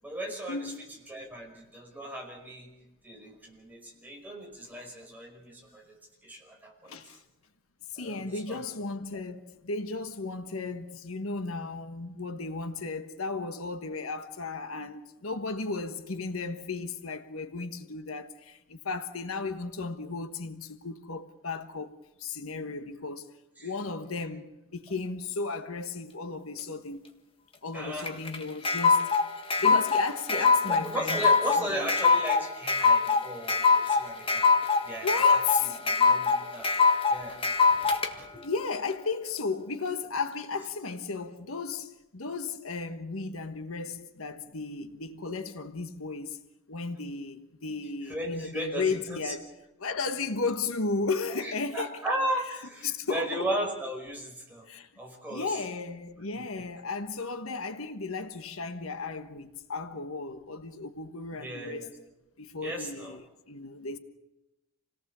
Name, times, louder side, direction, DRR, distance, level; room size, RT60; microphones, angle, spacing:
voice 1, 0.0-0.7 1.1-2.7 3.0-5.8 6.2-7.0 8.0-8.6 23.6-23.7 27.7-28.1 30.3-37.4 37.7-38.5 48.1-49.3 51.3-54.6 55.0-55.6 56.3-56.7 61.4-61.9 62.6-63.2, right 1 dB, 10° right, 5.3 m, -36 dB
voice 2, 6.8-7.2 7.9-23.3 23.6-27.0 27.6-29.1 29.6-31.2 31.7-31.9 35.0-35.8 38.4-46.4 46.7-49.5 49.8-51.9 52.8-53.5 54.7-54.9 55.3-61.9 62.4-64.0, left 4 dB, 85° left, 1.4 m, -34 dB
sound 1, 28.0-38.1, left 4 dB, 25° left, 1.6 m, -23 dB
28.0 x 18.0 x 6.9 m
head